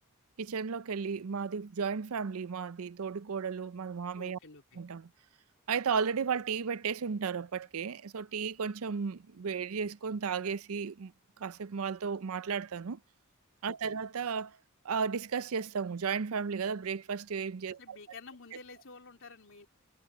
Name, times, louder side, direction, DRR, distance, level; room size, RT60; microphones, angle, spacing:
voice 1, 0.4-4.4 4.8-5.1 5.7-11.1 11.4-13.0 13.6-14.6 14.8-18.0, right 6 dB, 75° right, 0.5 m, -34 dB
voice 2, 4.1-4.8 13.7-14.0 17.7-19.7, left 3 dB, 65° left, 3.4 m, -51 dB
head